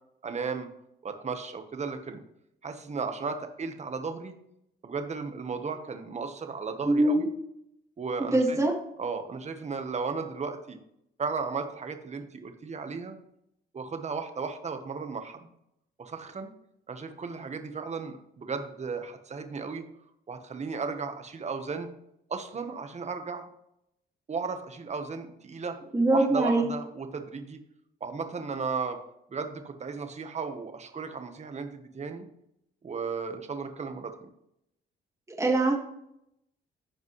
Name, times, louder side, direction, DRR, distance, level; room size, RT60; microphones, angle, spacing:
voice 1, 0.2-0.7 1.0-2.2 2.6-4.4 4.8-7.3 8.0-8.6 9.0-10.8 11.2-13.2 13.7-15.5 16.0-16.5 16.9-19.8 20.3-21.9 22.3-23.5 24.3-25.8 26.1-27.6 28.0-29.0 29.3-32.3 32.8-34.1, right 5 dB, 35° right, 7 dB, 1.2 m, -35 dB
voice 2, 6.9-7.3 8.2-8.7 25.9-26.6 35.4-35.7, right 2 dB, 15° right, -2 dB, 1.9 m, -23 dB
15.0 x 5.2 x 3.2 m, 0.77 s
cardioid pair, 90°, 20 cm